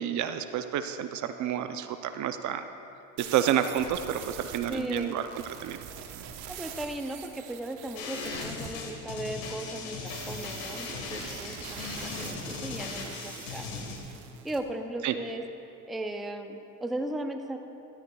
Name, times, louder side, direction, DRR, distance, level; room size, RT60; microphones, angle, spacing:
voice 1, 0.0-2.7 3.2-5.8 15.0-15.2, right 10 dB, 50° right, 9 dB, 0.6 m, -29 dB
sound 1, 3.2-8.7 10.1-14.6, right 8 dB, 80° right, 1.1 m, -44 dB
voice 2, 4.7-5.2 6.5-13.9 14.4-15.4 15.9-17.7, right 1 dB, ahead, 5 dB, 0.5 m, -37 dB
sound 2, 8.0-14.0, left 4 dB, 85° left, 1.6 m, -38 dB
13.5 x 12.5 x 2.3 m, 2.8 s
supercardioid pair, 100°, 40 cm